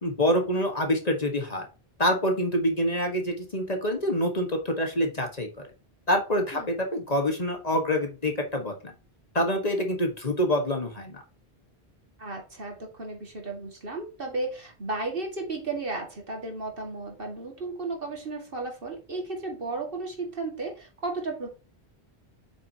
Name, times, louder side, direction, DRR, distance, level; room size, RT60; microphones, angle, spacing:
voice 1, 0.0-1.7 2.0-5.5 6.1-8.9 9.3-11.2, equal, 35° left, 3 dB, 1.5 m, -26 dB
voice 2, 12.2-21.5, right 3 dB, 55° right, 2 dB, 2.2 m, -34 dB
8.0 x 6.0 x 2.8 m, 0.32 s
omnidirectional pair, 1.1 m